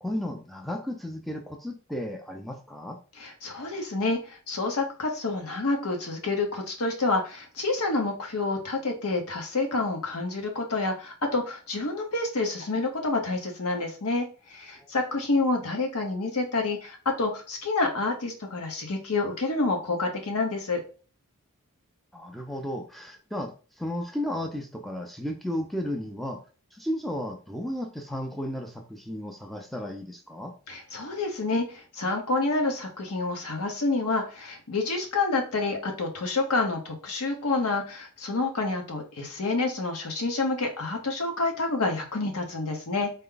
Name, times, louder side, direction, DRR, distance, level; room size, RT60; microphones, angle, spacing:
voice 1, 0.0-3.0 22.1-23.5 23.8-26.4 26.7-30.5, left 1 dB, ahead, 3 dB, 0.5 m, -34 dB
voice 2, 3.2-20.8 30.7-43.1, left 3 dB, 80° left, 3 dB, 1.0 m, -28 dB
4.1 x 2.2 x 3.8 m, 0.37 s
head